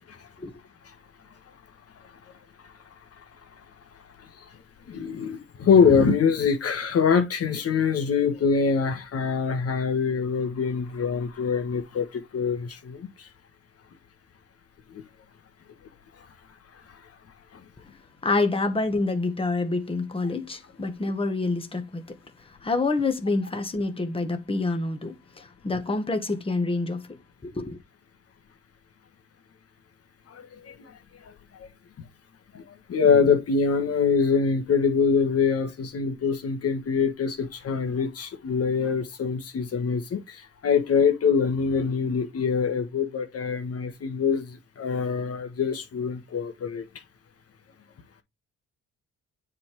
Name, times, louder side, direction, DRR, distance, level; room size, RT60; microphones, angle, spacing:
voice 1, 4.9-13.3 14.9-15.0 30.3-30.9 32.5-32.6 32.9-46.9, left 6 dB, 55° left, 1.5 m, -24 dB
voice 2, 18.2-27.0 27.4-27.8, left 3 dB, 20° left, 1.5 m, -27 dB
7.5 x 3.6 x 4.6 m
cardioid pair, 90°, 30 cm